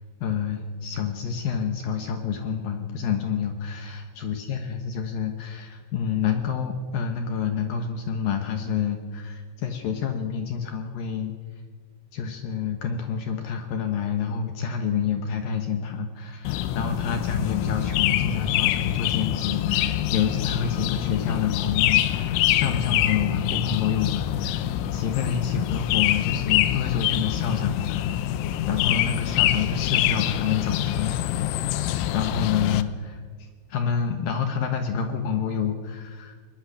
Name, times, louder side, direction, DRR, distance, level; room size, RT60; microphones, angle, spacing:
voice 1, 0.2-11.3 12.1-28.2 28.7-31.6 32.1-36.3, left 7 dB, 70° left, 6 dB, 2.4 m, -28 dB
sound 1, 16.5-32.8, left 13 dB, 85° left, 3.3 m, -25 dB
22.0 x 20.5 x 6.6 m, 1.6 s
omnidirectional pair, 5.6 m